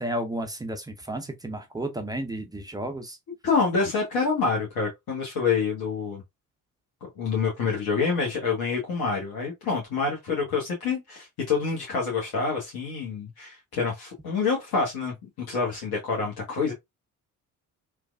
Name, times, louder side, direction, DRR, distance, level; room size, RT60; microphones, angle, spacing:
voice 1, 0.0-3.2, right 1 dB, 10° right, 0.5 m, -32 dB
voice 2, 3.4-6.2 7.2-15.1 15.5-16.7, left 5 dB, 50° left, 1.2 m, -27 dB
3.1 x 2.3 x 2.4 m
figure-of-eight pair, 50°, 47 cm